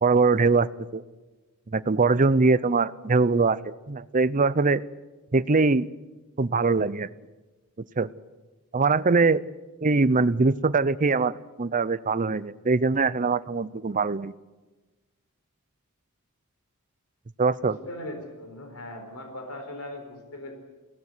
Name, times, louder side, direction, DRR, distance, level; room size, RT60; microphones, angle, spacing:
voice 1, 0.0-1.0 1.7-4.8 5.3-5.9 6.4-7.1 8.0-8.1 8.7-9.4 9.8-14.3 17.4-17.8, right 4 dB, 35° right, 16 dB, 0.6 m, -22 dB
voice 2, 17.6-20.5, left 1 dB, 70° left, 5 dB, 4.4 m, -39 dB
21.5 x 17.0 x 9.7 m, 1.2 s
head